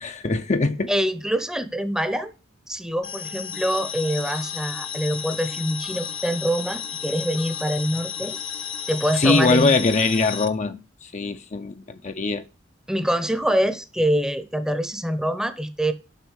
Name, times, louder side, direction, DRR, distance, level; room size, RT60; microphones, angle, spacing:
voice 1, 0.0-0.9 9.2-12.4, left 3 dB, 40° left, 0.6 m, -22 dB
voice 2, 0.9-2.3 2.7-8.4 8.9-9.8 12.9-15.9, equal, 5° right, 0.8 m, -25 dB
sound 1, 3.0-10.5, left 8 dB, 80° left, 1.1 m, -33 dB
8.2 x 6.1 x 6.3 m
head